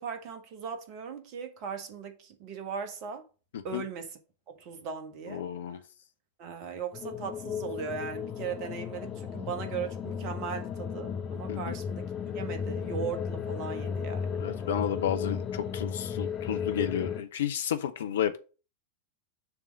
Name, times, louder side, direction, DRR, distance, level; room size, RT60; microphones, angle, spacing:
voice 1, 0.0-3.2 3.6-4.2 4.5-5.4 6.4-12.1 12.3-14.4, right 6 dB, 40° right, 1.6 m, -38 dB
voice 2, 5.3-5.8 11.5-11.8 14.4-18.4, left 9 dB, 60° left, 0.6 m, -32 dB
sound 1, 6.9-17.2, left 7 dB, 30° left, 1.0 m, -35 dB
7.0 x 3.6 x 6.3 m
figure-of-eight pair, 90°, 0 cm